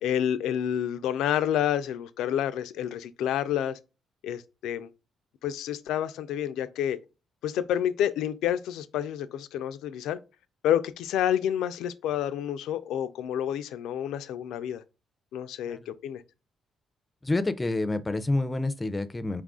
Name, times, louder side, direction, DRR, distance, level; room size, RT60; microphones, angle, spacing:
voice 1, 0.0-3.8 4.2-4.9 5.4-7.0 7.4-10.2 10.6-14.8 15.3-16.2, left 10 dB, 85° left, 0.3 m, -29 dB
voice 2, 17.2-19.4, left 2 dB, 20° left, 0.4 m, -28 dB
4.6 x 2.4 x 3.6 m
cardioid pair, 90°, 0 cm